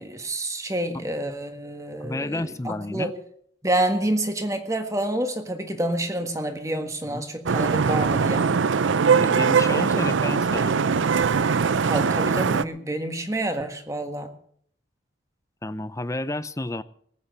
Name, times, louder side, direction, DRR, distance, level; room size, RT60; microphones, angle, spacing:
voice 1, 0.0-3.1 3.6-8.5 11.8-14.3, right 1 dB, 15° right, 6 dB, 1.6 m, -28 dB
voice 2, 2.0-3.1 7.1-7.3 9.2-10.8 15.6-16.8, left 2 dB, 15° left, 14 dB, 0.6 m, -30 dB
Vehicle horn car horn honking / Traffic noise roadway noise, 7.5-12.6, right 5 dB, 75° right, 0.5 m, -21 dB
19.5 x 8.6 x 6.8 m, 0.62 s
head